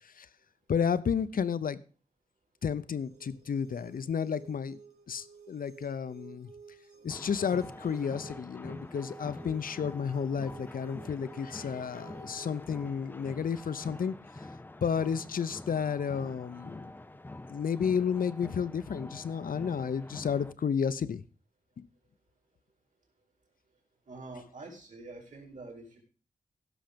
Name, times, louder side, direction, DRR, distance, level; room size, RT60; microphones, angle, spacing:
voice 1, 0.7-1.8 2.6-4.8 5.1-6.5 7.0-14.2 14.8-16.9 17.5-21.2 21.8-21.9, left 7 dB, 65° left, 15 dB, 0.8 m, -32 dB
sound 1, 3.0-12.9, right 5 dB, 85° right, 4.2 m, -53 dB
sound 2, 7.1-20.5, left 2 dB, 15° left, 0.4 m, -46 dB
voice 2, 24.1-26.0, right 2 dB, 55° right, 1 dB, 4.5 m, -46 dB
16.0 x 6.5 x 5.2 m, 0.37 s
wide cardioid pair, 130°, 15 cm